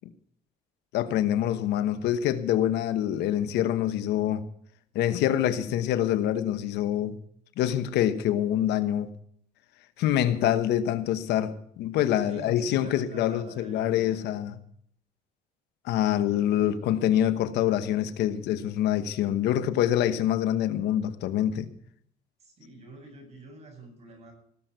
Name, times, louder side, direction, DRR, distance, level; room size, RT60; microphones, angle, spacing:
voice 1, 0.9-4.4 4.9-7.2 7.6-9.1 10.0-14.6 15.8-21.7, left 11 dB, 85° left, 1.1 m, -25 dB
voice 2, 12.3-14.2 16.6-16.8 22.4-24.3, right 3 dB, 40° right, 7.9 m, -47 dB
17.5 x 7.7 x 8.1 m
cardioid pair, 110°, 17 cm